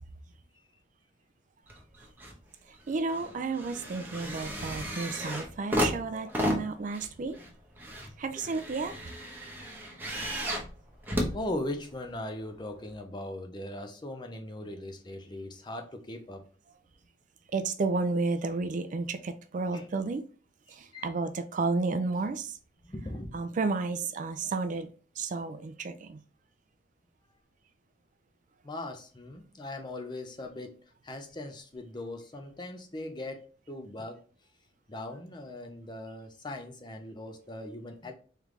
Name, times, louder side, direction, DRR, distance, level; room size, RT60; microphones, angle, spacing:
sound 1, 1.7-2.4 2.7-12.1 12.9-13.0, equal, 10° right, 0.8 m, -34 dB
voice 1, 2.9-7.4 8.2-8.9 17.5-20.2 20.7-22.6 23.3-24.9 25.2-26.2, right 3 dB, 45° right, 0.4 m, -32 dB
voice 2, 11.3-16.4 19.7-19.9 20.9-21.1 22.9-23.4 28.6-34.2 34.9-38.1, left 1 dB, 25° left, 0.6 m, -39 dB
3.7 x 3.3 x 3.2 m
head